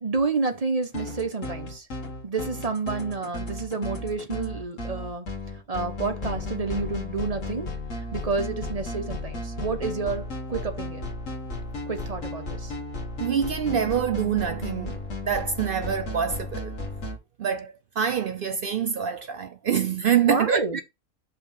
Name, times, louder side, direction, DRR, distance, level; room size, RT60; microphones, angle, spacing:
voice 1, 0.0-1.9 2.2-5.3 5.7-7.7 8.1-11.1 11.9-12.7 20.2-20.8, right 4 dB, 30° right, 0.8 m, -29 dB
sound 1, 0.8-17.2, left 2 dB, 55° left, 1.7 m, -34 dB
voice 2, 13.2-15.0 15.2-16.7 17.4-20.8, right 8 dB, 75° right, 0.5 m, -25 dB
5.6 x 3.1 x 5.5 m
omnidirectional pair, 1.6 m